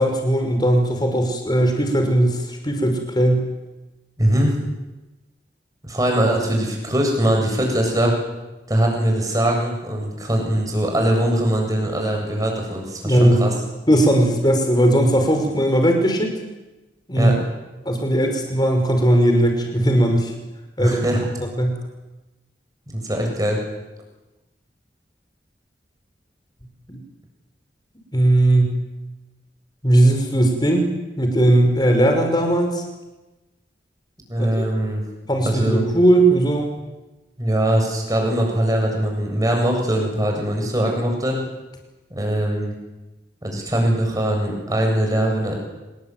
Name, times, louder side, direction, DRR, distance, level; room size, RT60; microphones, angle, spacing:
voice 1, 0.0-3.5 13.0-13.4 13.9-16.4 17.1-17.3 17.9-20.3 20.8-21.0 21.6-21.8 26.9-27.0 28.1-28.8 29.8-30.8 31.2-32.8 34.4-34.7 35.3-36.9, right 1 dB, 25° left, 4 dB, 5.6 m, -18 dB
voice 2, 4.2-4.5 5.8-8.1 8.7-13.5 17.1-17.4 20.8-21.3 22.9-23.6 34.3-35.0 35.4-35.9 37.4-41.4 42.1-42.7 43.4-45.5, right 1 dB, 20° right, 1 dB, 7.7 m, -21 dB
27.0 x 21.0 x 9.3 m, 1.1 s
head